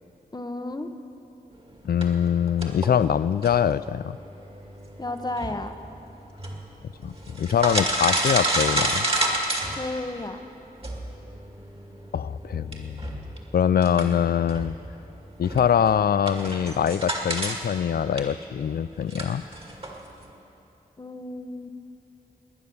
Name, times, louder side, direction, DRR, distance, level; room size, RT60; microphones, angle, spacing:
voice 1, 0.3-0.9 5.0-5.8 9.7-10.4 21.0-21.7, left 2 dB, 25° left, 8 dB, 1.0 m, -32 dB
voice 2, 1.8-4.2 7.0-9.1 12.1-13.2 13.5-14.7 15.4-19.4, left 8 dB, 75° left, 16 dB, 0.4 m, -23 dB
sound 1, 2.0-10.3 10.8-17.6 17.9-20.3, right 1 dB, 35° right, 2.2 m, -30 dB
20.5 x 9.6 x 7.0 m, 2.9 s
wide cardioid pair, 75°, 16 cm